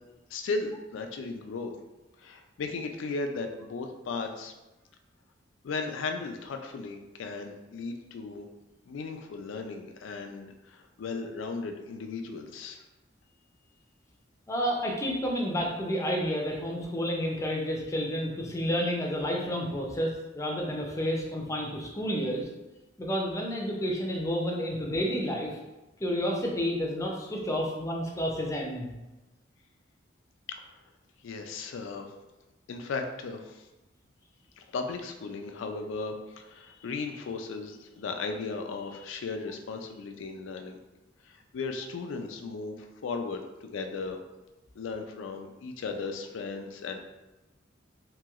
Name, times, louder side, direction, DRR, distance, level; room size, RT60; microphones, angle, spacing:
voice 1, 0.3-1.7 2.2-4.5 5.6-8.5 8.9-12.8 30.5-30.7 31.2-32.1 32.7-33.7 34.6-40.8 41.2-44.2 44.8-47.0, left 4 dB, 85° left, 5 dB, 0.4 m, -36 dB
voice 2, 14.5-22.5 23.0-25.6 26.0-28.9, equal, 15° left, -1 dB, 0.4 m, -30 dB
2.9 x 2.7 x 2.4 m, 1.0 s
head